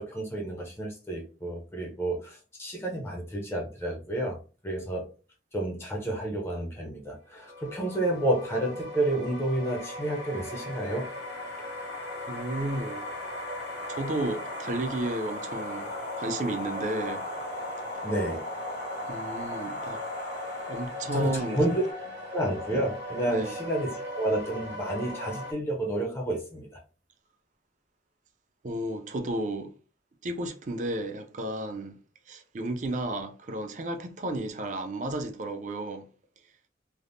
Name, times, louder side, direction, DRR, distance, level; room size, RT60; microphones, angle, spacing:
voice 1, 0.0-4.4 4.6-5.0 5.5-11.1 18.0-18.4 21.1-21.9 22.3-26.7, right 1 dB, 15° left, 0.5 m, -30 dB
sound 1, 7.3-25.5, left 2 dB, 75° right, 0.9 m, -39 dB
sound 2, 9.7-21.9, left 1 dB, 70° left, 1.1 m, -39 dB
voice 2, 12.3-13.0 13.9-15.9 16.2-17.2 19.0-20.0 20.7-21.7 23.3-23.6 28.6-29.7 30.2-32.0 32.3-36.1, right 1 dB, 40° right, 0.4 m, -33 dB
3.3 x 2.0 x 2.5 m
head